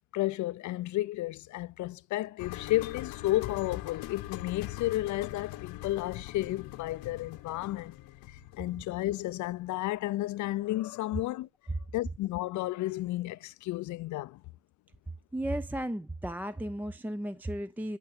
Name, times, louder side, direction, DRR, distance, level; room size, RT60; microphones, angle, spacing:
voice 1, 0.1-7.9 8.6-11.5 11.9-14.4, left 16 dB, 55° left, 0.5 m, -32 dB
sound 1, 2.4-10.3 10.6-10.7, left 15 dB, 80° left, 1.1 m, -43 dB
voice 2, 15.3-18.0, right 1 dB, 5° right, 0.5 m, -34 dB
11.0 x 5.4 x 7.4 m
supercardioid pair, 75°, 34 cm